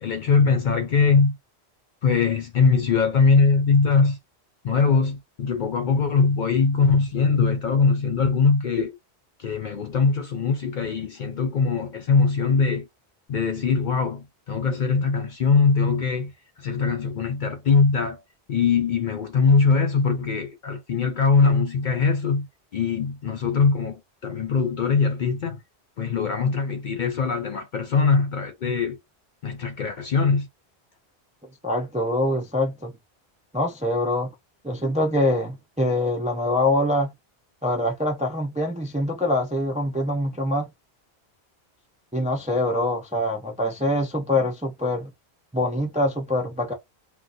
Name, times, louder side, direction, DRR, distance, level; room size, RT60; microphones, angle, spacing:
voice 1, 0.0-1.4 2.0-4.2 4.6-8.9 9.4-12.9 13.3-16.3 16.6-18.2 18.5-22.5 22.7-25.6 26.0-29.0 29.4-30.5, left 4 dB, 55° left, 0.6 m, -21 dB
voice 2, 31.6-32.9 33.5-34.3 34.6-37.1 37.6-40.7 42.1-45.1 45.5-46.7, left 1 dB, 10° right, 0.4 m, -24 dB
2.4 x 2.3 x 3.9 m
omnidirectional pair, 1.1 m